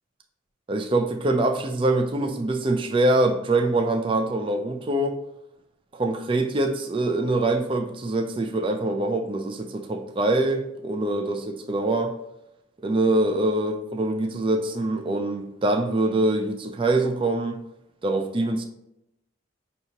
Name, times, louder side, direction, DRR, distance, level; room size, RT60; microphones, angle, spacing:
voice 1, 0.7-5.2 5.9-12.1 12.8-17.6 18.0-18.6, right 2 dB, 25° right, 5 dB, 0.3 m, -24 dB
5.4 x 2.8 x 2.8 m, 0.84 s
head